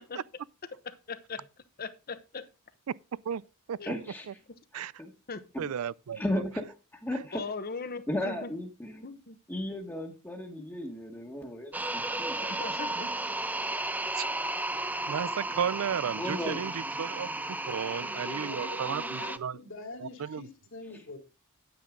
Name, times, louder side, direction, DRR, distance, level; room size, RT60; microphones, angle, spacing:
voice 1, 1.1-1.5 1.8-2.4 3.8-3.9 5.3-5.7 7.3-8.5 9.0-9.4 10.6-10.7 12.4-13.1, left 4 dB, 45° left, 1.0 m, -39 dB
voice 2, 3.9-4.3 4.7-5.1 5.5-5.7 6.1-7.4 8.1-9.0 9.5-12.6 16.2-16.6, left 1 dB, 10° left, 1.3 m, -35 dB
voice 3, 5.6-6.4 7.1-7.2 14.1-14.3 15.1-19.6 20.0-20.5, right 8 dB, 75° right, 0.4 m, -34 dB
sound 1, 11.7-19.4, right 2 dB, 10° right, 0.5 m, -34 dB
voice 4, 17.9-21.2, left 2 dB, 60° left, 2.7 m, -44 dB
9.5 x 9.2 x 3.7 m
head